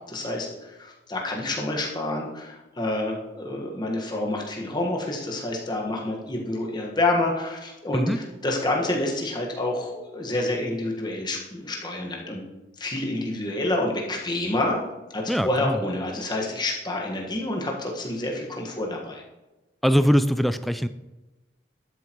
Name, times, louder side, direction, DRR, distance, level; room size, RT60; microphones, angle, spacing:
voice 1, 0.1-12.4 12.8-14.8 15.1-19.2, left 2 dB, 25° left, -1 dB, 1.6 m, -28 dB
voice 2, 15.3-15.8 19.8-20.9, equal, ahead, 11 dB, 0.3 m, -22 dB
12.0 x 7.9 x 3.1 m, 1.1 s
head